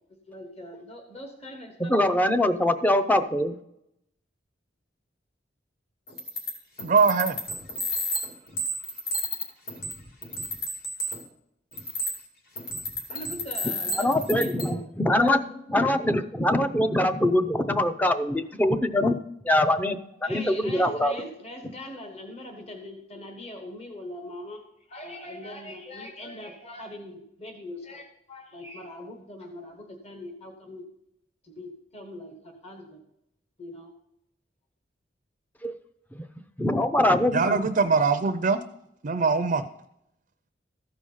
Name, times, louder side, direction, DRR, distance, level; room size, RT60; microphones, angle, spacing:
voice 1, 0.3-2.5 13.1-14.8 20.2-24.6 24.9-30.8 31.4-33.0 33.6-33.9, left 1 dB, 35° left, 3 dB, 1.3 m, -41 dB
voice 2, 1.9-3.5 14.0-19.2 19.4-20.0 20.3-21.2 35.6-35.7 36.1-36.2 36.6-37.6, left 1 dB, 10° left, 9 dB, 0.5 m, -23 dB
sound 1, 6.1-6.5 6.8-11.2 11.7-12.2 12.6-14.7, left 1 dB, 60° left, 2.3 m, -31 dB
voice 3, 6.8-7.4 37.3-38.6 39.0-39.7, right 4 dB, 45° right, 9 dB, 0.5 m, -22 dB
14.0 x 4.9 x 5.6 m, 0.78 s
head